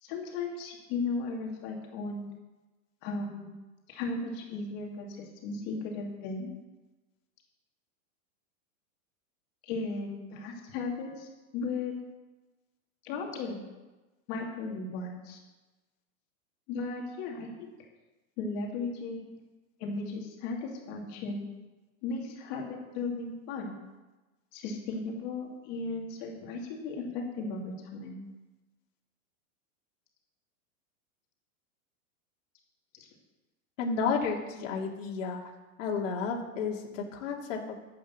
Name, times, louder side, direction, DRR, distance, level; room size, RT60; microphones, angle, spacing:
voice 1, 0.0-2.3 3.0-3.5 3.9-6.5 9.6-11.9 13.0-13.7 14.3-15.4 16.7-17.7 18.4-19.4 19.8-21.4 22.0-23.8 24.5-28.1, left 3 dB, 35° left, 0 dB, 2.8 m, -36 dB
voice 2, 33.8-35.4 35.8-37.8, left 5 dB, 65° left, -1 dB, 2.6 m, -32 dB
13.5 x 8.8 x 7.5 m, 1.2 s
supercardioid pair, 160°, 41 cm